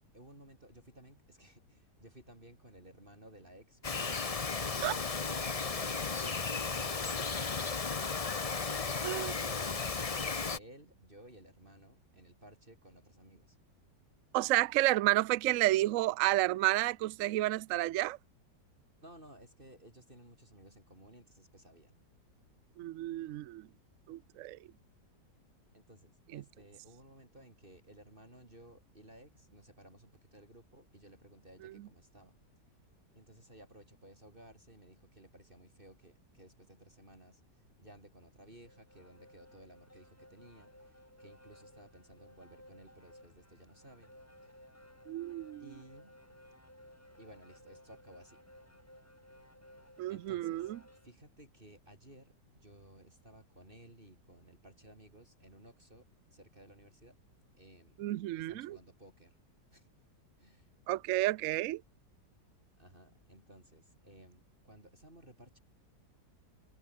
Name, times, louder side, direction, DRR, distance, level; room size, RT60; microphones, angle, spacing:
voice 1, 0.1-4.2 4.5-8.1 8.8-13.6 19.0-22.0 25.7-32.4 33.1-44.1 44.4-44.5 45.6-46.2 47.2-48.4 50.1-50.7 51.0-57.2 57.6-58.1 58.3-59.4 59.7-59.9 60.4-60.7 62.8-65.6, right 1 dB, 30° right, 5.0 m, -57 dB
Bird vocalization bird call bird song, 3.8-10.6, left 4 dB, 30° left, 0.7 m, -35 dB
voice 2, 14.3-18.2 22.8-23.7 24.1-24.6 26.3-26.4 45.1-45.6 50.0-50.8 58.0-58.8 60.9-61.8, right 17 dB, 80° right, 0.7 m, -31 dB
sound 1, 38.5-51.1, left 1 dB, 10° left, 3.4 m, -58 dB
omnidirectional pair, 1.9 m